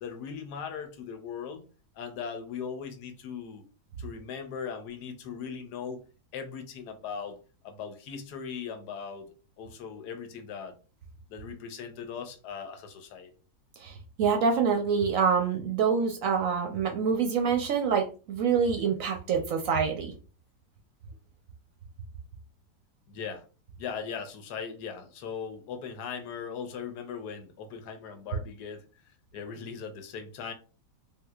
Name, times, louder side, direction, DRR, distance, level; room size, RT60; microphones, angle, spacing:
voice 1, 0.0-1.6 1.9-3.6 4.0-6.0 6.3-7.4 7.6-9.3 9.6-10.8 11.3-13.3 23.1-23.4 23.8-28.8 29.3-30.5, left 6 dB, 85° left, 7 dB, 1.2 m, -39 dB
voice 2, 13.8-20.1, right 6 dB, 65° right, 3 dB, 0.9 m, -26 dB
3.6 x 2.7 x 2.3 m, 0.34 s
omnidirectional pair, 1.7 m